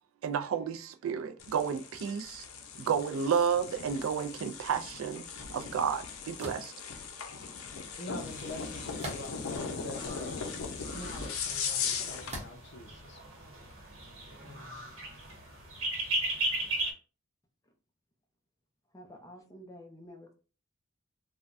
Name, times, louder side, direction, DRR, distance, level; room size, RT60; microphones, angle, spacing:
voice 1, 0.2-2.4 2.8-5.2 5.5-6.7, right 7 dB, 70° right, 0.3 m, -31 dB
sound 1, 1.4-12.4, left 6 dB, 85° left, 0.5 m, -39 dB
sound 2, 6.4-6.7 9.0-9.5 10.2-10.3 12.3-12.7, right 1 dB, 35° right, 0.8 m, -41 dB
voice 2, 8.0-10.4 10.8-13.2 14.4-14.9, left 2 dB, 55° left, 0.8 m, -45 dB
sound 3, 8.2-16.9, right 2 dB, 85° right, 1.1 m, -38 dB
voice 3, 18.9-20.3, equal, 15° left, 0.6 m, -50 dB
3.4 x 2.2 x 2.5 m
head